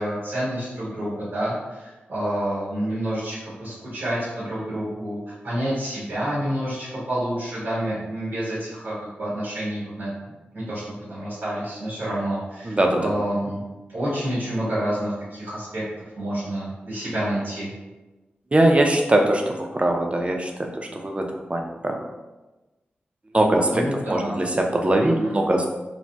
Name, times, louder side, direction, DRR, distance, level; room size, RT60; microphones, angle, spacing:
voice 1, 0.0-10.1 10.5-13.6 13.9-15.8 16.2-17.7 23.7-24.4 25.0-25.4, right 1 dB, 85° right, -10 dB, 1.2 m, -28 dB
voice 2, 12.6-13.1 18.5-22.0 23.3-25.7, right 1 dB, 30° right, 2 dB, 0.5 m, -21 dB
4.0 x 2.0 x 2.2 m, 1.1 s
cardioid pair, 50°, 4 cm